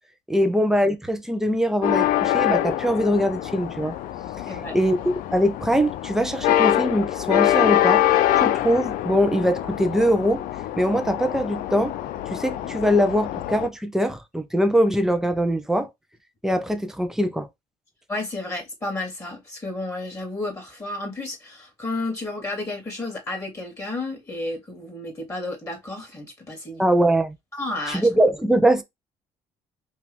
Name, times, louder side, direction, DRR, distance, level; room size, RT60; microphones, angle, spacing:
voice 1, 0.3-4.0 4.5-8.0 8.4-10.4 10.8-11.9 12.3-15.9 16.4-17.5 26.8-27.3 27.9-28.8, equal, 5° right, 1.0 m, -22 dB
sound 1, 1.8-13.7, left 13 dB, 75° left, 0.6 m, -24 dB
voice 2, 4.5-4.8 18.1-26.8 27.6-28.1, left 2 dB, 20° left, 3.0 m, -32 dB
4.6 x 3.0 x 3.5 m
supercardioid pair, 80°, 15 cm